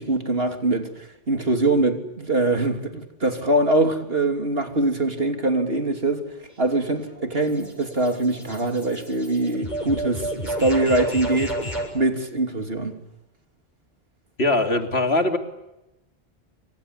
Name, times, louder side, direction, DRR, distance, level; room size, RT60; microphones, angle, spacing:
voice 1, 0.0-11.6 11.9-13.0, right 2 dB, 65° right, 3.4 m, -23 dB
sound 1, 6.5-11.9, right 1 dB, 45° left, 7.2 m, -32 dB
voice 2, 14.4-15.4, left 2 dB, 75° left, 3.2 m, -21 dB
27.5 x 26.0 x 8.2 m
omnidirectional pair, 1.1 m